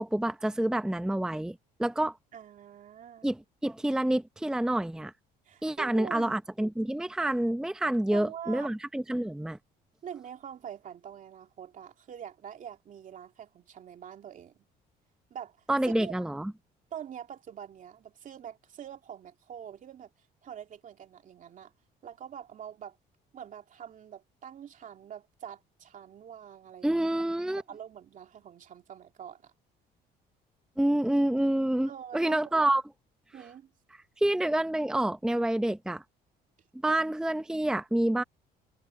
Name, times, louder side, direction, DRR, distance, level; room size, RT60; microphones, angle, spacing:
voice 1, 0.0-2.2 3.2-5.1 5.6-9.6 15.7-16.5 26.8-27.6 30.8-32.8 34.2-36.0 36.8-38.2, right 1 dB, 5° right, 0.7 m, -28 dB
voice 2, 2.3-3.3 5.5-6.4 8.1-8.7 10.0-14.6 15.3-15.6 15.8-16.3 16.9-20.1 20.4-21.7 22.0-23.0 23.3-27.1 27.6-29.5 31.9-32.7 33.3-33.7, right 9 dB, 50° right, 2.6 m, -45 dB
cardioid pair, 110°, 17 cm